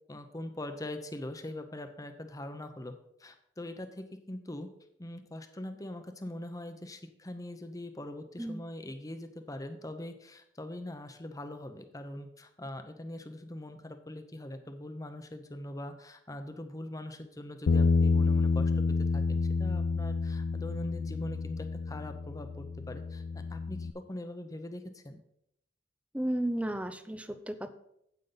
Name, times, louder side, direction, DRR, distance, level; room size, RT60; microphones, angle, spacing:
voice 1, 0.1-2.9 3.2-4.7 5.0-18.8 19.1-23.2 23.5-25.2, left 1 dB, 20° left, 8 dB, 0.9 m, -42 dB
Bass guitar, 17.7-23.9, left 4 dB, 80° left, 0.4 m, -29 dB
voice 2, 26.1-27.7, right 1 dB, 10° right, 10 dB, 0.6 m, -33 dB
9.2 x 8.4 x 4.0 m, 0.75 s
head